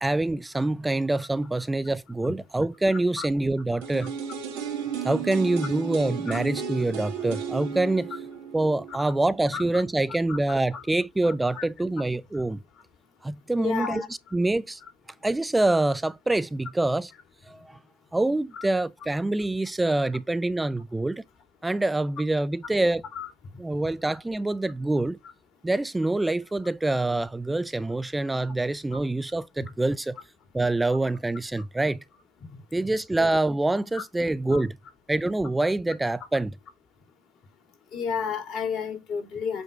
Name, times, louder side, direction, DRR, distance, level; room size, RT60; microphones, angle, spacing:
voice 1, 0.0-4.1 5.0-8.1 8.5-12.6 13.2-14.8 15.2-17.1 17.5-17.8 18.1-21.2 21.6-23.0 23.6-25.2 25.6-30.1 30.5-32.0 32.7-34.8 35.1-36.6, right 2 dB, 15° right, 0.5 m, -26 dB
sound 1, 3.8-9.7 10.0-10.1, right 7 dB, 75° right, 1.8 m, -34 dB
voice 2, 13.6-14.1 18.6-18.7 23.2-23.3 33.9-34.0 34.5-34.6 37.9-39.6, left 6 dB, 60° left, 2.3 m, -31 dB
7.7 x 2.6 x 4.8 m
hypercardioid pair, 65°, 0 cm